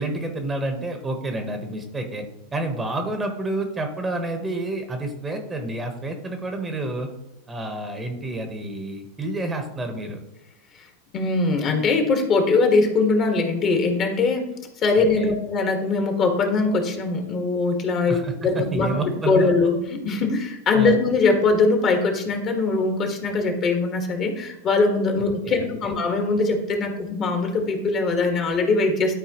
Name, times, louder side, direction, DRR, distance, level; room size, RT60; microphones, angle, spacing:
voice 1, 0.0-2.3 2.5-7.1 7.5-10.2 15.0-15.3 18.0-19.5 20.7-21.0 25.4-26.0, right 2 dB, 15° right, 5 dB, 1.2 m, -29 dB
voice 2, 11.1-14.5 14.8-18.9 19.3-29.1, left 3 dB, 35° left, 4 dB, 1.7 m, -21 dB
12.0 x 4.4 x 3.0 m, 0.92 s
hypercardioid pair, 95°, 0 cm